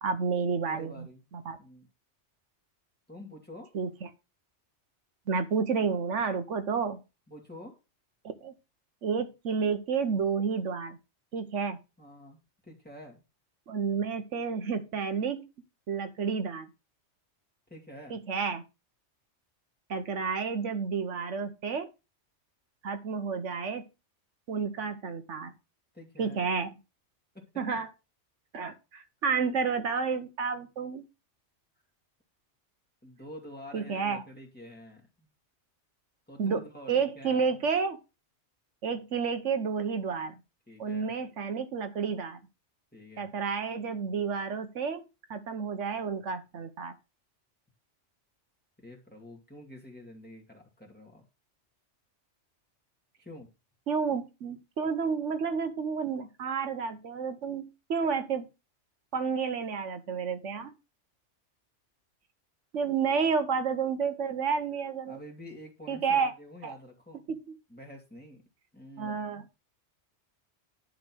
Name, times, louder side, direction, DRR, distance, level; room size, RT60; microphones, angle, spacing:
voice 1, 0.0-1.1 1.4-1.6 3.7-4.1 5.3-7.0 8.4-8.5 9.0-11.0 11.3-11.8 13.7-15.5 15.9-16.7 18.1-18.6 19.9-21.9 22.8-23.9 24.5-25.5 26.2-26.7 27.6-27.9 28.5-31.0 33.7-34.2 36.4-38.0 38.8-40.4 40.8-42.4 43.2-45.0 45.3-46.9 53.9-58.5 59.1-60.7 62.7-65.2 65.9-66.3 66.6-66.8 67.3-67.4 69.0-69.6, right 5 dB, 80° right, 1.3 m, -30 dB
voice 2, 0.5-1.3 1.6-1.9 3.1-3.7 7.3-7.8 12.0-13.2 17.7-18.2 25.9-26.5 27.3-27.6 33.0-35.3 36.3-37.4 40.7-41.1 42.9-43.3 48.8-51.2 53.2-53.5 65.1-67.2 67.7-68.4 68.7-69.3, left 1 dB, 10° left, 2.3 m, -48 dB
10.5 x 3.9 x 6.1 m
omnidirectional pair, 1.2 m